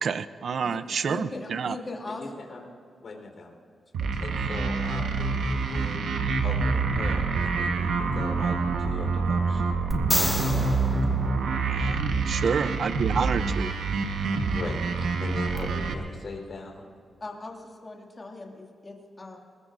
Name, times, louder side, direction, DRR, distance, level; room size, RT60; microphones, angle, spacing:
voice 1, 0.0-1.7 11.8-13.7, right 6 dB, 55° right, 13 dB, 0.5 m, -28 dB
voice 2, 1.0-2.2 4.0-4.1 17.2-19.4, left 2 dB, 20° left, 0 dB, 2.3 m, -39 dB
voice 3, 2.1-2.6 3.0-3.5 4.2-6.0 6.4-9.6 12.4-12.6 14.5-16.9, left 3 dB, 45° left, 1 dB, 4.0 m, -39 dB
sound 1, 3.9-15.9, right 4 dB, 85° right, 1.2 m, -26 dB
sound 2, 9.9-12.1 15.6-15.7, left 1 dB, 5° left, 1.1 m, -30 dB
25.5 x 20.5 x 2.6 m, 2.4 s
wide cardioid pair, 165°, 0 cm